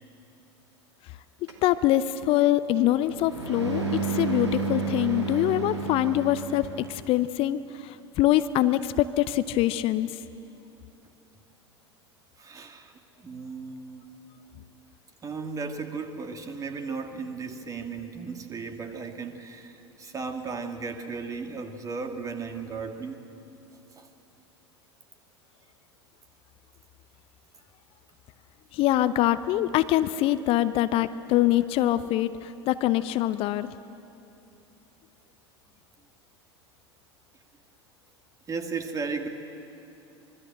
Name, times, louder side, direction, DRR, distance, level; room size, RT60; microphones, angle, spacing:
sound 1, 1.5-7.1, right 4 dB, 80° right, 2.7 m, -32 dB
voice 1, 1.6-10.1 28.7-33.7, left 14 dB, 40° left, 14 dB, 0.7 m, -24 dB
voice 2, 12.4-12.9 13.2-14.1 15.2-23.2 24.0-24.1 30.6-30.7 38.5-39.3, right 4 dB, 25° right, 6 dB, 2.2 m, -35 dB
25.0 x 22.5 x 7.8 m, 2.8 s
figure-of-eight pair, 80°, 14 cm